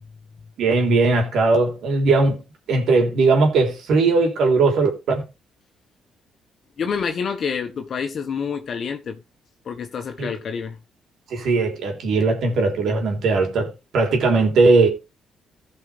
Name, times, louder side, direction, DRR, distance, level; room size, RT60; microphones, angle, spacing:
voice 1, 0.6-2.4 2.7-5.2 10.2-10.4 11.3-14.9, right 3 dB, 70° right, 3.6 m, -19 dB
voice 2, 6.8-9.2 9.6-10.8, left 6 dB, 55° left, 1.3 m, -27 dB
16.0 x 5.6 x 3.4 m
cardioid pair, 90°, 0 cm